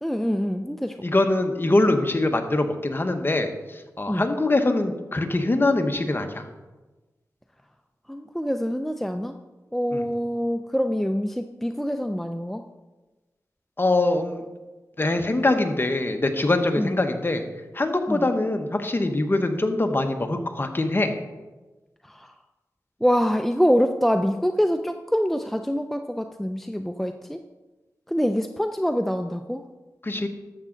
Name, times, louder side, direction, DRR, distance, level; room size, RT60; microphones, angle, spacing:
voice 1, 0.0-1.0 4.1-4.2 8.1-9.3 9.7-12.6 16.8-17.0 18.1-18.3 22.1-22.3 23.0-27.4 28.1-29.6, equal, 5° left, 6 dB, 0.5 m, -25 dB
voice 2, 1.0-3.5 4.0-6.5 9.9-10.0 13.8-14.4 15.0-17.4 17.7-21.1 30.0-30.3, left 2 dB, 35° left, 6 dB, 1.1 m, -23 dB
12.0 x 7.4 x 3.9 m, 1.2 s
cardioid pair, 60°, 7 cm